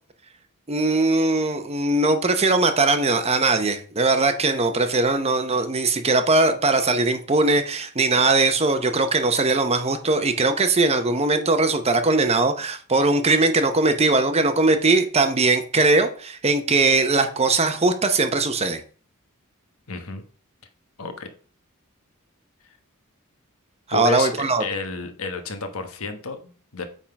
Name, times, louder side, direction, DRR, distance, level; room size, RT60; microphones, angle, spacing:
voice 1, 0.7-18.8 23.9-24.6, right 3 dB, 30° right, 8 dB, 0.9 m, -20 dB
voice 2, 19.9-20.2 21.0-21.3 22.6-22.7 23.9-26.9, left 3 dB, 70° left, 7 dB, 1.3 m, -31 dB
8.7 x 3.8 x 5.8 m, 0.43 s
head